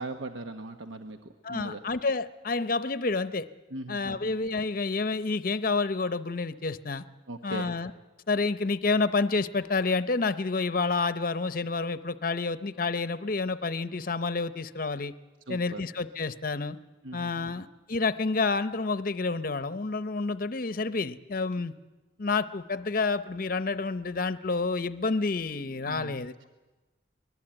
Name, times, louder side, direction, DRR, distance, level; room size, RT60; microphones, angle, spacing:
voice 1, 0.0-1.8 3.7-4.3 7.3-7.7 15.5-15.8 17.0-17.6 25.9-26.2, right 2 dB, 75° right, 6 dB, 1.1 m, -39 dB
voice 2, 1.4-3.5 3.9-7.0 7.4-7.9 8.3-15.1 15.5-16.8 17.1-21.7 22.2-26.3, left 3 dB, 45° left, 13 dB, 0.7 m, -29 dB
24.0 x 20.0 x 8.9 m, 1.2 s
head